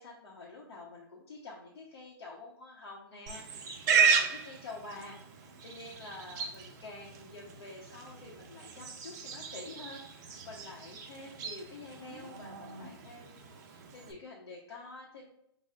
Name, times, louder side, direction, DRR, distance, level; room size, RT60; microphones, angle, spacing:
voice 1, 0.0-15.3, left 2 dB, 85° left, -3 dB, 0.8 m, -48 dB
Livestock farm animals working animals, 3.3-14.1, right 6 dB, 45° right, 0.5 m, -34 dB
5.5 x 2.0 x 2.4 m, 0.75 s
hypercardioid pair, 155°, 13 cm